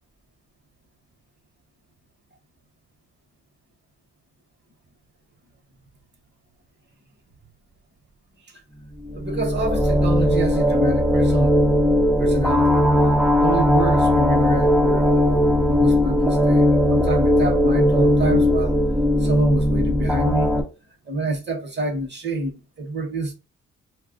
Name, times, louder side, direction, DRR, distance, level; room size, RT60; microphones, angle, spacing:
sound 1, 9.0-20.6, left 1 dB, ahead, 0.6 m, -18 dB
voice 1, 9.1-11.7 12.2-18.8 19.2-20.5 21.0-23.3, right 2 dB, 35° right, 1.1 m, -27 dB
2.3 x 2.2 x 3.7 m
cardioid pair, 80°, 30 cm